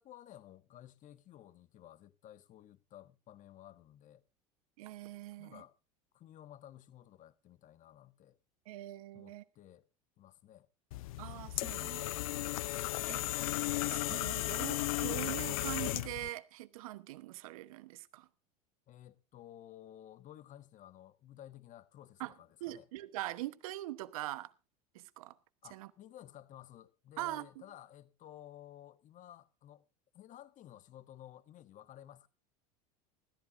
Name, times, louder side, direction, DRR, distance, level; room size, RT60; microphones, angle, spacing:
voice 1, 0.0-4.2 5.4-5.7 6.1-8.4 9.1-9.9 10.2-10.7 18.9-22.9 25.6-29.8 30.1-32.3, left 12 dB, 45° left, 1.4 m, -54 dB
voice 2, 4.8-5.6 8.7-9.4 11.2-13.3 13.9-18.3 22.2-22.3 22.6-24.5 24.9-25.3 25.7-25.9 27.2-27.5, right 17 dB, 75° right, 1.1 m, -43 dB
sound 1, 10.9-16.3, left 18 dB, 75° left, 0.6 m, -35 dB
19.5 x 14.0 x 2.6 m
hypercardioid pair, 85°, 18 cm